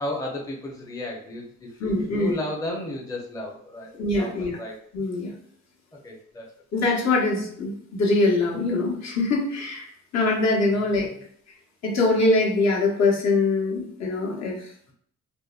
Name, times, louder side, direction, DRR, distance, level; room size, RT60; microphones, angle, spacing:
voice 1, 0.0-4.8 6.0-6.5, left 1 dB, 10° left, -1 dB, 0.5 m, -34 dB
voice 2, 1.8-2.4 4.0-4.6 4.9-5.3 6.7-9.9 10.1-11.1 11.8-14.7, left 2 dB, 60° left, -1 dB, 0.9 m, -23 dB
2.6 x 2.1 x 2.3 m, 0.62 s
cardioid pair, 90°, 30 cm